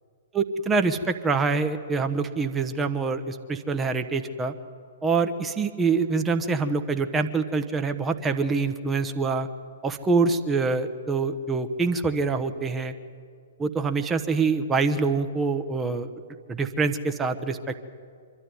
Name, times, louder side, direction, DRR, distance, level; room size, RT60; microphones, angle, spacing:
voice 1, 0.3-4.5 5.0-9.5 9.8-12.9 13.6-16.1 16.5-17.6, right 4 dB, 15° right, 8 dB, 1.1 m, -25 dB
25.0 x 12.5 x 9.7 m, 2.2 s
figure-of-eight pair, 115°, 0 cm